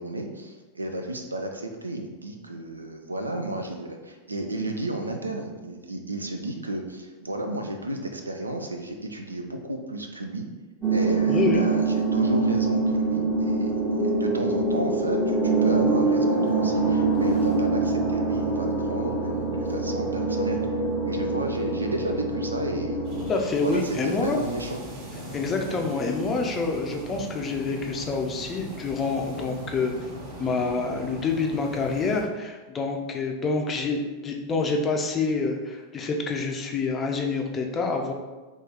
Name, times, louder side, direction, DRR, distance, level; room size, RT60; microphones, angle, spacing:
voice 1, 0.0-10.5 10.9-20.7 21.1-23.2 23.6-24.8 25.7-25.8, right 1 dB, 80° right, 4 dB, 0.4 m, -33 dB
sound 1, 10.8-23.3, right 3 dB, 15° right, 0.8 m, -24 dB
voice 2, 11.3-11.6 23.3-24.4 25.3-29.9 30.4-38.1, left 4 dB, 25° left, 2 dB, 0.5 m, -27 dB
sound 2, 23.0-32.2, right 1 dB, 45° right, 1.2 m, -39 dB
3.0 x 2.8 x 3.6 m, 1.3 s
figure-of-eight pair, 90°, 0 cm